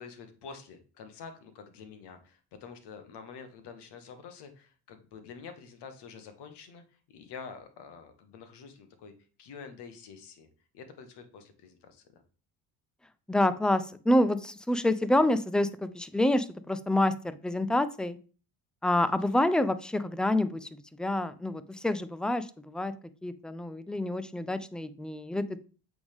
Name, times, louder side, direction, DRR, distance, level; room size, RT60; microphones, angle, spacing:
voice 1, 0.0-9.1 9.4-10.5 10.7-12.2, left 5 dB, 60° left, 8 dB, 1.3 m, -47 dB
voice 2, 13.3-18.2 18.8-20.7 21.0-22.9 23.2-25.6, left 1 dB, ahead, 14 dB, 0.3 m, -27 dB
7.8 x 3.5 x 3.5 m, 0.37 s
hypercardioid pair, 65°, 45 cm